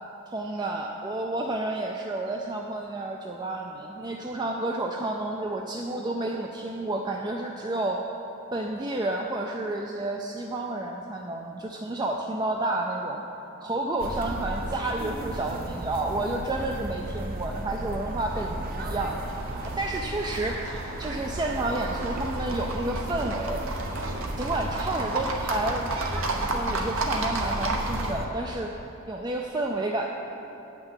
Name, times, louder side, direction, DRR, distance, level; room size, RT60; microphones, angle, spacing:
voice 1, 0.3-8.0 8.5-19.4 19.6-23.6 24.4-28.7 29.1-30.1, right 2 dB, 20° right, 1 dB, 0.4 m, -30 dB
sound 1, 14.0-28.3, right 1 dB, 45° right, 0.8 m, -34 dB
Livestock farm animals working animals, 19.3-28.1, right 2 dB, 70° right, 1.0 m, -33 dB
8.6 x 6.0 x 8.0 m, 2.9 s
head